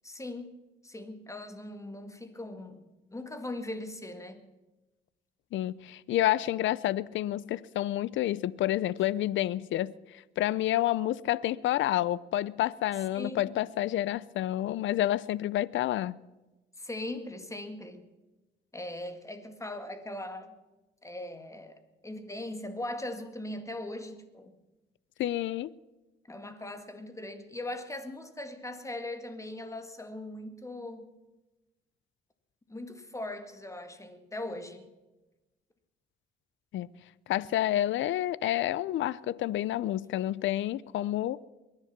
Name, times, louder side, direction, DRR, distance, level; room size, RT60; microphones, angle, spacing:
voice 1, 0.0-0.5 0.8-4.4 13.1-13.5 16.8-18.0 18.7-20.6 21.0-24.5 26.3-31.1 32.7-34.9, left 1 dB, 15° left, 1.9 m, -40 dB
voice 2, 5.5-10.0 10.4-16.2 25.2-25.7 36.7-36.9 37.3-41.4, left 13 dB, 75° left, 0.5 m, -29 dB
22.5 x 10.5 x 5.9 m
cardioid pair, 90°, 20 cm